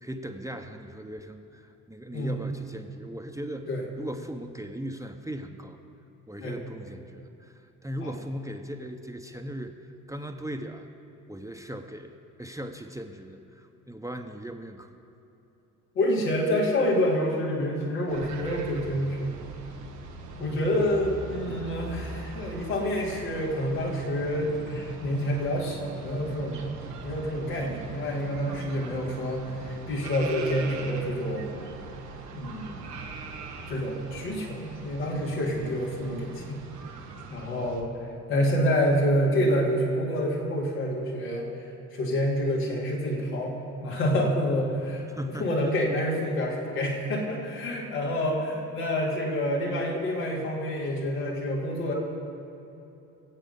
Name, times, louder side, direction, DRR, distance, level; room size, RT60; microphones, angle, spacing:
voice 1, 0.0-3.7 4.0-5.8 6.3-10.9 11.3-14.9 21.5-21.7 45.1-45.5, equal, 5° right, 4 dB, 1.0 m, -38 dB
voice 2, 15.9-19.3 20.4-26.7 27.0-31.7 32.3-33.0 33.7-36.6 37.3-37.9 38.3-41.5 41.9-45.1 45.4-51.9, equal, 80° left, -4 dB, 2.8 m, -28 dB
sound 1, 18.1-37.8, right 4 dB, 90° right, 1.3 m, -41 dB
22.5 x 8.1 x 5.4 m, 3.0 s
hypercardioid pair, 50°, 46 cm